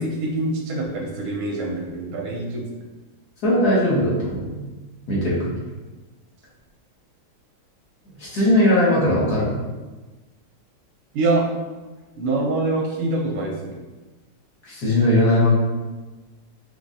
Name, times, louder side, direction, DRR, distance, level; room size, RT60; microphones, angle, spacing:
voice 1, 0.0-2.7 11.1-11.5 12.1-13.8, right 2 dB, 90° right, 0 dB, 1.7 m, -25 dB
voice 2, 3.4-4.5 5.1-5.5 8.2-9.6 14.7-15.5, left 1 dB, 50° left, -7 dB, 1.8 m, -19 dB
5.2 x 3.5 x 2.6 m, 1.2 s
omnidirectional pair, 2.3 m